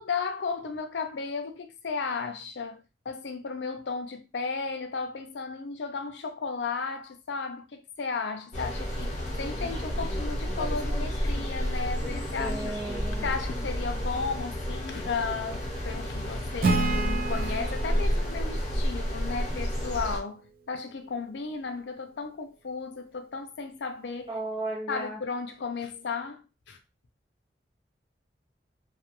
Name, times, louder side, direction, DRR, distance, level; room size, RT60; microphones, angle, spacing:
voice 1, 0.0-9.1 9.4-12.7 13.2-24.4 24.9-26.8, left 4 dB, 85° left, 0.5 m, -34 dB
sound 1, 8.5-20.2, equal, 40° left, 0.7 m, -31 dB
voice 2, 12.4-13.3 24.3-25.2, right 2 dB, 30° right, 0.8 m, -35 dB
Acoustic guitar / Strum, 16.6-20.1, right 3 dB, 55° right, 0.4 m, -31 dB
2.3 x 2.2 x 2.9 m
head